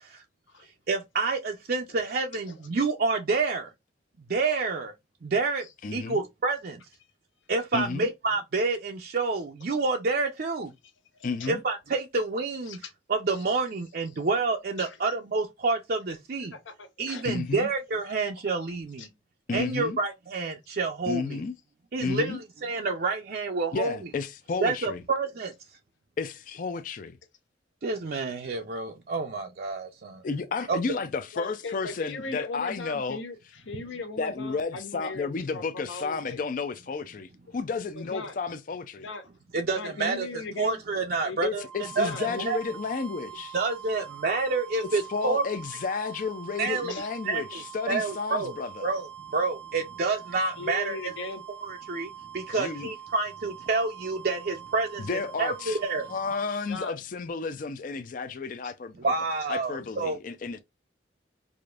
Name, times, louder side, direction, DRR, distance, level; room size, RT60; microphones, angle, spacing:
voice 1, 0.9-3.7 4.3-4.9 5.2-5.6 5.9-6.8 7.5-10.7 11.5-12.8 13.1-16.5 17.0-19.1 19.5-21.4 21.9-24.0 24.6-25.5 27.8-30.2 30.7-30.8 39.5-40.3 40.6-41.7 42.0-42.6 43.5-45.5 46.6-46.9 47.3-48.5 48.8-49.1 49.3-51.0 51.6-52.1 52.3-56.1 59.0-60.2, right 3 dB, 50° right, 0.5 m, -28 dB
voice 2, 5.8-6.2 7.7-8.1 11.2-11.6 17.2-17.7 19.5-20.0 21.1-21.5 22.0-22.4 23.7-25.0 26.2-27.2 30.2-33.2 34.2-39.0 41.4-43.5 44.8-48.9 52.6-52.9 55.0-55.8 56.1-59.1 59.5-60.6, left 4 dB, 45° left, 0.4 m, -32 dB
voice 3, 11.1-11.5 12.7-12.9 13.3-13.4 14.8-15.0 16.5-17.3 19.0-19.1 31.3-36.4 37.5-37.6 37.9-38.4 39.0-39.3 39.7-40.8 41.2-41.4 42.0-42.4 46.9-47.1 50.5-51.4 52.5-52.7 56.7-57.0 58.6-58.7, left 3 dB, 85° left, 1.0 m, -38 dB
sound 1, 41.6-56.9, right 9 dB, 5° left, 0.6 m, -44 dB
4.8 x 2.5 x 2.3 m
head